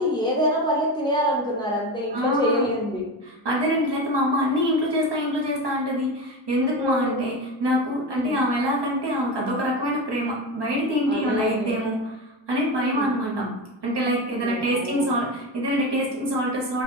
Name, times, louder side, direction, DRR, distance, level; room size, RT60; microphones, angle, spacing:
voice 1, 0.0-3.0 6.7-7.2 8.1-8.4 11.1-11.7 12.8-13.1 14.4-15.1, left 1 dB, 10° left, -5 dB, 0.7 m, -26 dB
voice 2, 2.1-2.7 3.2-12.2 12.5-13.5 13.8-16.8, equal, 55° right, -3 dB, 0.8 m, -25 dB
2.2 x 2.1 x 3.0 m, 1.0 s
wide cardioid pair, 40°, 49 cm